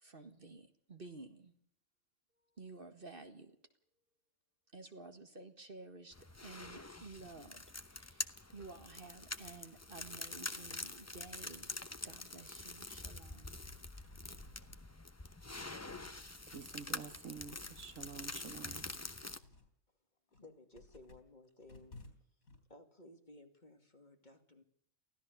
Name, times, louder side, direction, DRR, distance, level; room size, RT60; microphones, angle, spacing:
voice 1, 0.0-1.5 2.6-3.6 4.7-6.2 6.4-11.8 12.0-13.6, right 3 dB, 40° right, 2.0 m, -53 dB
sound 1, 6.1-19.4, left 2 dB, 15° left, 0.7 m, -46 dB
sound 2, 13.6-17.0 17.4-19.7 20.2-22.6, left 2 dB, 85° left, 4.3 m, -60 dB
voice 2, 16.5-18.9, right 6 dB, 70° right, 1.6 m, -49 dB
voice 3, 20.4-22.0 22.7-24.6, left 2 dB, 35° left, 2.6 m, -58 dB
24.5 x 15.5 x 6.8 m
omnidirectional pair, 1.4 m